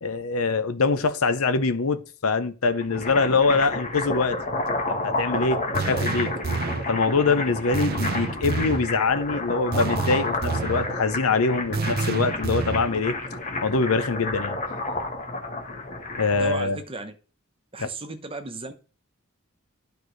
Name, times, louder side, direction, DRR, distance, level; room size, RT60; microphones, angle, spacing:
voice 1, 0.0-4.4 4.9-6.3 6.9-13.2 13.6-14.6 16.2-16.8, left 4 dB, 85° left, 0.8 m, -24 dB
sound 1, 2.8-16.6, left 2 dB, 35° left, 1.3 m, -30 dB
sound 2, 5.7-6.9 7.7-8.9 9.7-10.9 11.7-12.9, right 4 dB, 45° right, 0.5 m, -28 dB
voice 2, 16.4-17.2 17.7-18.7, right 3 dB, 25° right, 0.9 m, -35 dB
12.0 x 4.5 x 3.2 m
head